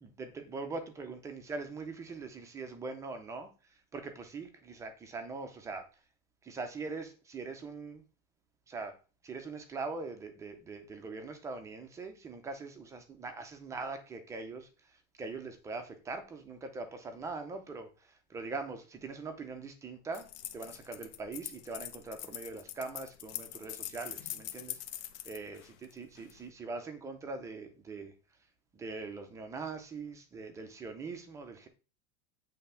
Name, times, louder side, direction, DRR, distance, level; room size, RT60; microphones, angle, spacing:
voice 1, 0.0-6.0 6.4-8.0 8.7-28.1 28.7-31.7, right 3 dB, 10° right, 0.4 m, -42 dB
sound 1, 20.1-26.4, left 12 dB, 60° left, 1.0 m, -43 dB
8.6 x 3.4 x 5.5 m
supercardioid pair, 175°, 38 cm